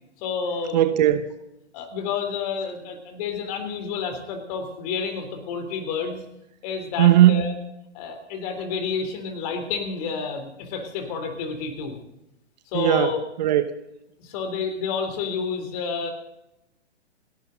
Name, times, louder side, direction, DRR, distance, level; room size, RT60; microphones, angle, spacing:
voice 1, 0.2-0.8 1.7-6.2 6.6-7.5 7.9-12.0 12.7-13.2 14.2-16.1, left 5 dB, 35° left, 7 dB, 3.6 m, -29 dB
voice 2, 0.7-1.3 7.0-7.5 12.7-13.7, right 12 dB, 40° right, 11 dB, 1.1 m, -18 dB
30.0 x 12.0 x 4.0 m, 0.89 s
figure-of-eight pair, 125°, 34 cm